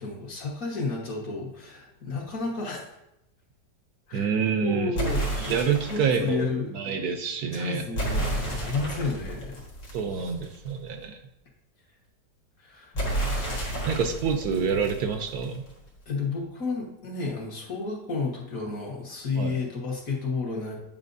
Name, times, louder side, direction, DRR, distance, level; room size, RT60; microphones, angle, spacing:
voice 1, 0.0-2.8 4.1-4.3 4.6-5.5 5.8-6.7 7.5-9.6 10.1-10.3 12.6-12.9 14.2-14.3 16.1-20.8, left 4 dB, 55° left, -2 dB, 1.7 m, -31 dB
voice 2, 4.1-4.9 5.3-7.8 9.9-11.2 13.9-15.6 19.4-19.6, right 6 dB, 70° right, 6 dB, 1.1 m, -27 dB
sound 1, 4.9-6.2 7.9-10.7 12.9-15.7, right 1 dB, 85° left, 2.2 m, -31 dB
9.0 x 5.7 x 2.6 m, 0.85 s
omnidirectional pair, 1.9 m